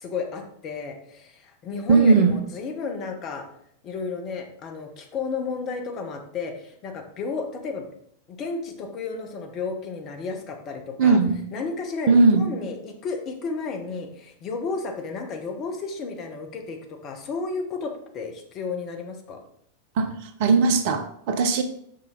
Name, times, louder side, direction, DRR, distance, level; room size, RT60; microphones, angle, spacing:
voice 1, 0.0-3.4 3.8-7.9 8.3-11.2 11.5-19.4, left 4 dB, 35° left, 4 dB, 1.2 m, -32 dB
voice 2, 1.9-2.4 11.0-11.4 12.1-12.4 20.0-21.6, right 4 dB, 50° right, 8 dB, 0.7 m, -18 dB
6.7 x 5.6 x 3.9 m, 0.69 s
figure-of-eight pair, 90°, 0 cm